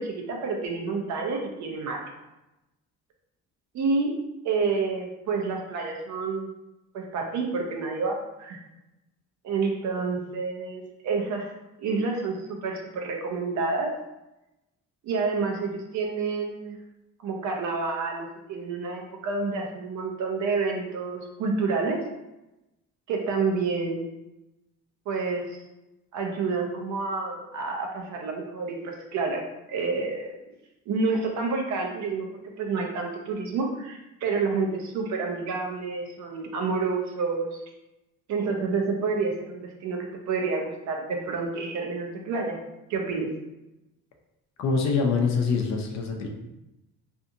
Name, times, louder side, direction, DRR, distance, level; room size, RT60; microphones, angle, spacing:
voice 1, 0.0-2.1 3.7-4.1 4.4-6.5 6.9-8.6 9.4-11.5 11.8-13.9 15.0-16.8 17.2-22.0 23.1-24.1 25.1-25.6 26.1-30.3 30.9-37.6 38.3-42.6 42.9-43.3, right 4 dB, 70° right, 1 dB, 0.6 m, -29 dB
voice 2, 44.6-46.3, left 5 dB, 65° left, 2 dB, 0.5 m, -24 dB
2.6 x 2.6 x 2.5 m, 0.96 s
cardioid pair, 160°, 30 cm